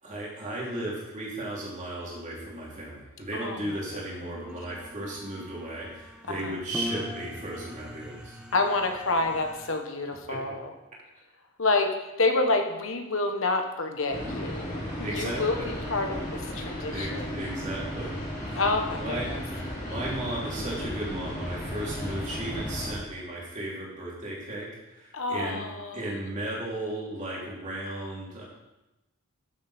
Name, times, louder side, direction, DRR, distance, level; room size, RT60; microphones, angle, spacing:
voice 1, 0.0-8.4 10.3-10.4 15.0-15.7 16.9-18.1 18.5-18.6 19.0-19.3 19.8-25.7 25.9-28.4, right 1 dB, 35° right, -4 dB, 3.1 m, -35 dB
sound 1, 4.5-9.8, equal, 5° right, 0.8 m, -41 dB
voice 2, 8.5-10.7 11.6-14.7 15.0-17.4 18.5-19.4 25.1-26.0, left 2 dB, 60° left, 5 dB, 1.3 m, -28 dB
sound 2, 14.1-22.9, equal, 35° left, 2.9 m, -35 dB
13.0 x 7.3 x 4.3 m, 0.99 s
head